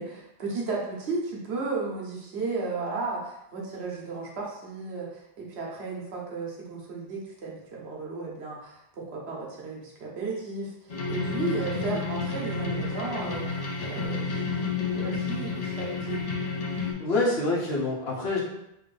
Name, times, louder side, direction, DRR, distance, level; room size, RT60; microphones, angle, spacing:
voice 1, 0.0-10.7 11.1-13.5 13.8-16.2, right 3 dB, 90° right, -2 dB, 1.1 m, -34 dB
sound 1, 10.9-16.9, left 4 dB, 50° left, 0.5 m, -30 dB
voice 2, 17.0-18.4, left 2 dB, 75° left, -3 dB, 1.0 m, -26 dB
3.0 x 2.5 x 3.2 m, 0.83 s
omnidirectional pair, 1.1 m